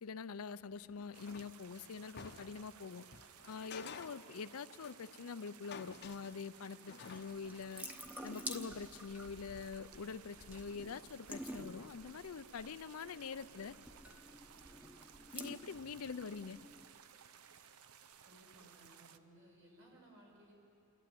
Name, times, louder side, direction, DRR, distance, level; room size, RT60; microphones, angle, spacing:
voice 1, 0.0-3.1 3.5-7.9 8.2-13.8 15.3-16.6, left 5 dB, 75° left, 16 dB, 0.5 m, -45 dB
sound 1, 0.7-2.7 3.1-5.2 5.5-7.7, left 5 dB, 50° left, 0.8 m, -52 dB
sound 2, 1.1-19.2, right 8 dB, 85° right, 0.7 m, -59 dB
Water tap faucet / Sink (filling or washing) / Drip, 7.0-16.8, equal, 10° right, 1.0 m, -50 dB
voice 2, 18.2-20.5, right 1 dB, 70° right, -2 dB, 5.7 m, -61 dB
28.0 x 12.0 x 9.3 m, 2.8 s
head